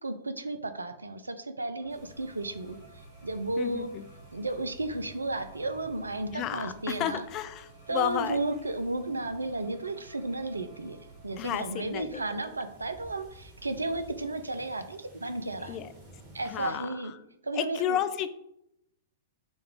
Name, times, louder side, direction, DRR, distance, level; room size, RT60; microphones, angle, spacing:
voice 1, 0.0-3.9 4.3-7.3 7.9-11.0 11.2-15.8 16.3-17.1 17.4-18.0, right 2 dB, 75° right, 10 dB, 0.4 m, -33 dB
sound 1, 1.8-12.0, right 3 dB, 85° left, 1.6 m, -53 dB
sound 2, 1.9-16.7, equal, 35° right, 1.5 m, -55 dB
voice 2, 3.6-4.0 6.3-8.4 11.4-12.2 15.7-15.9 16.5-16.9 17.6-18.3, left 11 dB, 30° left, 11 dB, 0.3 m, -32 dB
6.0 x 2.4 x 3.6 m, 0.79 s
figure-of-eight pair, 105°, 0 cm